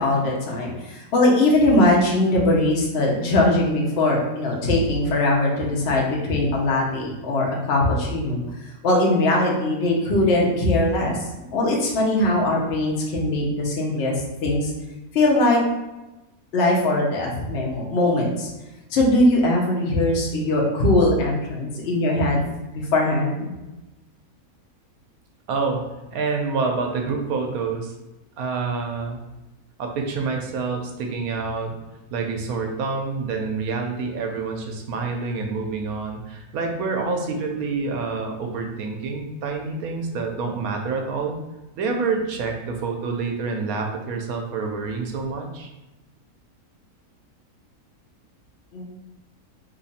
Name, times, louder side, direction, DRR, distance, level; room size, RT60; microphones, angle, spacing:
voice 1, 0.0-8.4 8.8-11.2 11.5-14.1 14.4-14.7 15.1-15.6 16.5-18.5 18.9-22.4 22.7-23.4 48.7-48.8, left 1 dB, 55° left, -2 dB, 0.9 m, -20 dB
voice 2, 25.5-27.9 28.4-29.2 29.8-31.8 32.1-41.4 41.7-45.7, right 4 dB, 80° right, 3 dB, 1.0 m, -27 dB
2.9 x 2.4 x 4.0 m, 1.0 s
omnidirectional pair, 1.6 m